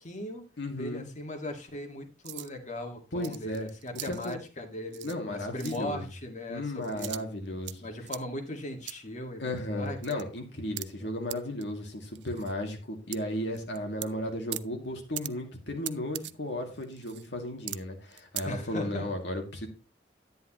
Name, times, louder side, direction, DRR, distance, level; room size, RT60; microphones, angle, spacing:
voice 1, 0.0-0.4 0.7-7.2 7.8-10.0 11.0-11.1 18.5-19.1, left 1 dB, 45° left, 4 dB, 1.9 m, -38 dB
voice 2, 0.6-1.1 3.1-3.7 4.1-4.4 5.0-6.0 6.5-7.9 9.4-19.7, left 1 dB, 75° left, 3 dB, 2.4 m, -35 dB
sound 1, 2.2-2.5 3.1-4.3 4.9-5.2 5.5-5.8 6.8-7.8 8.1-8.2 8.8-9.0 9.6-9.7 9.9-10.2 10.8-10.9 11.3-11.4 11.6-11.7 12.0-12.5 13.1-13.2 13.5-14.1 14.5-14.6 15.2-15.3 15.8-16.3 16.8-17.3 17.7-17.8 18.1-18.4, right 16 dB, 75° right, 0.5 m, -39 dB
10.5 x 9.4 x 3.0 m, 0.30 s
head